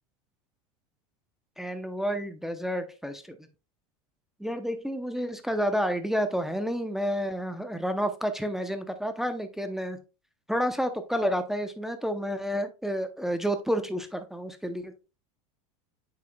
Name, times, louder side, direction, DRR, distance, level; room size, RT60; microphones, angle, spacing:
voice 1, 1.6-3.4 4.4-10.0 10.5-14.9, equal, ahead, 7 dB, 0.6 m, -30 dB
7.6 x 5.7 x 2.2 m, 0.31 s
supercardioid pair, 125°, 17 cm